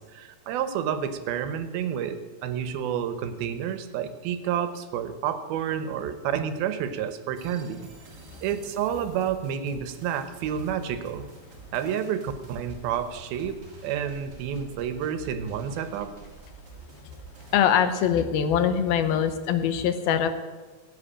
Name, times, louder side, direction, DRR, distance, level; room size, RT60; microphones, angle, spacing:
voice 1, 0.1-7.9 8.4-11.2 11.7-16.1, right 8 dB, 75° right, 10 dB, 2.7 m, -30 dB
sound 1, 7.3-17.6, right 4 dB, 35° right, 1.8 m, -48 dB
voice 2, 17.5-20.3, left 8 dB, 75° left, 10 dB, 2.8 m, -23 dB
16.5 x 8.4 x 8.7 m, 1.3 s
omnidirectional pair, 4.5 m